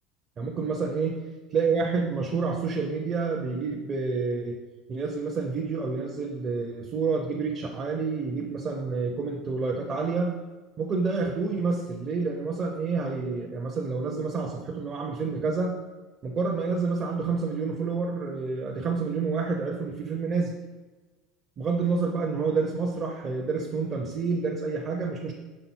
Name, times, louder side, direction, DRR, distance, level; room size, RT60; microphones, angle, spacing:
voice 1, 0.4-1.2 1.5-4.5 4.9-10.3 10.8-15.8 16.2-20.5 21.6-25.3, right 4 dB, 30° right, 0 dB, 0.6 m, -28 dB
5.6 x 3.8 x 4.4 m, 1.3 s
cardioid pair, 155°, 0 cm